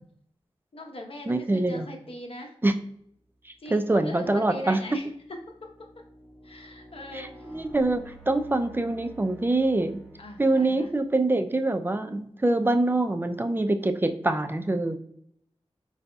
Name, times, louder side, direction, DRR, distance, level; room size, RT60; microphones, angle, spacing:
voice 1, 0.7-2.5 3.6-5.7 6.4-7.6 10.2-10.9, left 1 dB, 65° left, 1 dB, 0.9 m, -41 dB
voice 2, 1.3-1.9 2.6-2.7 3.7-4.8 7.1-10.0 10.4-15.0, right 2 dB, 20° right, 8 dB, 0.4 m, -25 dB
sound 1, 3.3-3.6 4.2-11.0, right 2 dB, ahead, 1.5 m, -51 dB
4.9 x 4.1 x 2.3 m, 0.71 s
wide cardioid pair, 60°, 10 cm